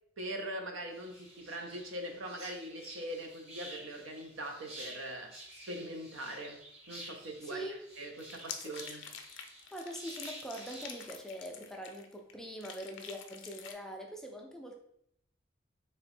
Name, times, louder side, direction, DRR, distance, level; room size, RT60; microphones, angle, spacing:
voice 1, 0.2-9.1, right 1 dB, 85° right, 4 dB, 0.6 m, -42 dB
sound 1, 0.9-11.1, right 1 dB, 30° right, 0.9 m, -51 dB
voice 2, 7.4-7.8 8.6-8.7 9.7-14.7, equal, 5° left, 1 dB, 0.3 m, -43 dB
sound 2, 8.2-12.3 12.6-13.7, left 7 dB, 65° left, 0.5 m, -47 dB
3.6 x 2.9 x 3.1 m, 0.72 s
head